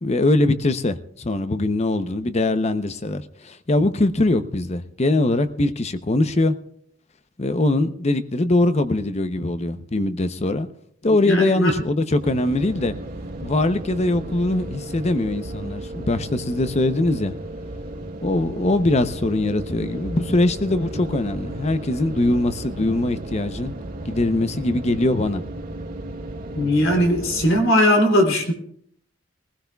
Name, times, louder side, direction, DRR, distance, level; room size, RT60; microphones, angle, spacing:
voice 1, 0.0-6.6 7.4-10.7 11.0-12.9 13.4-17.4 18.2-23.7 24.0-25.4, left 2 dB, 35° left, 0.7 m, -22 dB
voice 2, 11.2-11.7 26.5-28.5, left 1 dB, 80° left, 3.2 m, -18 dB
sound 1, 12.2-27.6, right 1 dB, 45° right, 1.8 m, -34 dB
22.0 x 15.5 x 2.3 m
head